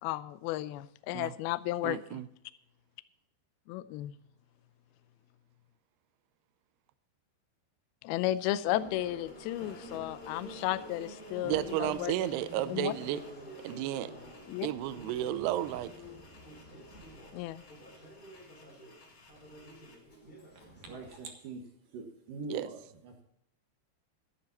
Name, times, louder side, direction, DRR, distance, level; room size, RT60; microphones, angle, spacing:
voice 1, 0.0-2.2 3.7-4.2 8.0-12.1 12.7-12.9 14.5-14.7 17.3-17.6, left 15 dB, 85° left, 14 dB, 2.2 m, -33 dB
voice 2, 1.8-2.3 11.4-13.2 13.6-14.1 14.6-15.9 22.5-22.7, right 13 dB, 80° right, 14 dB, 2.7 m, -33 dB
Subway metro underground, 8.6-21.2, right 1 dB, 20° left, 4.1 m, -48 dB
sound 1, 9.3-20.0, left 2 dB, 50° left, 4.4 m, -60 dB
voice 3, 20.8-21.6 21.9-23.2, right 3 dB, 60° right, 3 dB, 2.8 m, -43 dB
13.5 x 11.5 x 4.2 m, 0.73 s
omnidirectional pair, 5.0 m